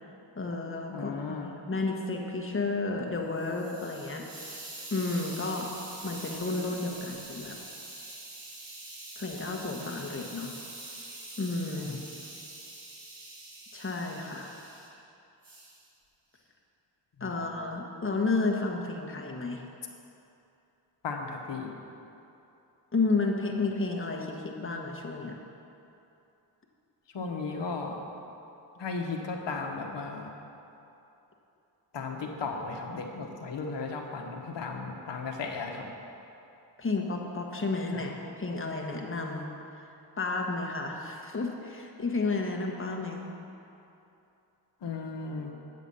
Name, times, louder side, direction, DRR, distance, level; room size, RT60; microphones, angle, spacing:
voice 1, 0.4-4.2 4.9-5.7 6.0-7.6 9.2-10.5 11.4-12.0 13.7-14.5 17.2-19.6 22.9-25.3 36.8-38.1 38.4-39.5 40.2-43.2, left 3 dB, 25° left, 1 dB, 1.4 m, -31 dB
voice 2, 0.9-1.5 11.9-12.0 17.2-17.5 21.0-21.7 27.1-28.0 28.8-30.3 31.9-35.9 37.9-38.1 44.8-45.5, left 4 dB, 65° left, 1 dB, 1.3 m, -35 dB
Hiss, 3.1-14.9 15.4-15.8, right 2 dB, 45° right, 2.3 m, -45 dB
8.2 x 7.6 x 5.5 m, 2.8 s
cardioid pair, 55°, 46 cm